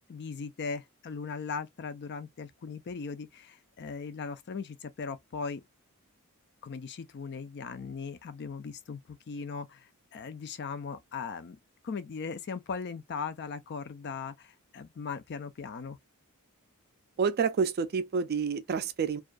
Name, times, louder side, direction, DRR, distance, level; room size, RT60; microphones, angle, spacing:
voice 1, 0.1-5.6 6.6-11.6 11.8-16.0, left 5 dB, 50° left, 0.4 m, -38 dB
voice 2, 17.2-19.2, right 5 dB, 45° right, 0.4 m, -28 dB
2.4 x 2.3 x 2.4 m
head